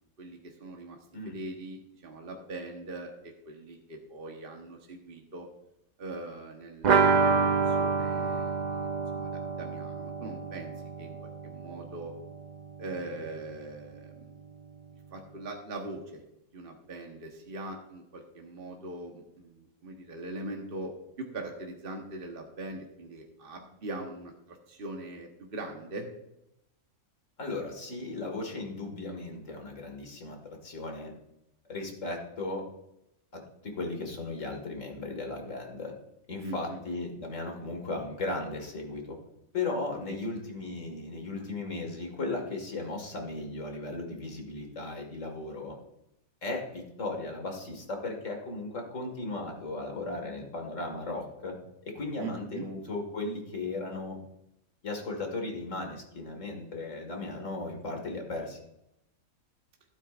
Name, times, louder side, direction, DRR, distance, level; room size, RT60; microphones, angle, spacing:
voice 1, 0.2-1.0 1.2-5.5 6.0-8.7 9.1-10.7 11.0-11.1 11.4-12.1 12.8-14.4 15.1-16.2 16.5-26.1 36.4-36.8 52.2-52.7, right 2 dB, 40° right, 1 dB, 1.4 m, -41 dB
sound 1, 6.8-12.4 12.7-12.8 13.1-13.2, right 5 dB, 70° right, 0.4 m, -28 dB
voice 2, 27.4-30.4 30.6-31.1 31.7-32.6 33.3-35.9 36.3-39.2 39.5-45.8 46.4-51.6 51.9-54.2 54.8-58.6, left 2 dB, 65° left, 2 dB, 2.3 m, -36 dB
15.5 x 8.9 x 2.5 m, 0.84 s
omnidirectional pair, 1.4 m